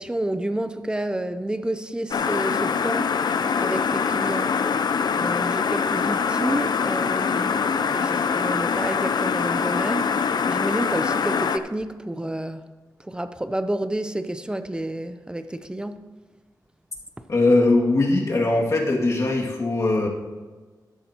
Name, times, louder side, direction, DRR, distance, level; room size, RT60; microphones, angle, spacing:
voice 1, 0.0-4.6 5.1-12.7 13.0-16.0, right 1 dB, 10° right, 0.6 m, -30 dB
sound 1, 2.1-11.6, left 6 dB, 80° left, 0.5 m, -24 dB
voice 2, 17.3-20.1, left 2 dB, 50° left, 2.3 m, -20 dB
14.0 x 11.0 x 3.0 m
wide cardioid pair, 110°, 7 cm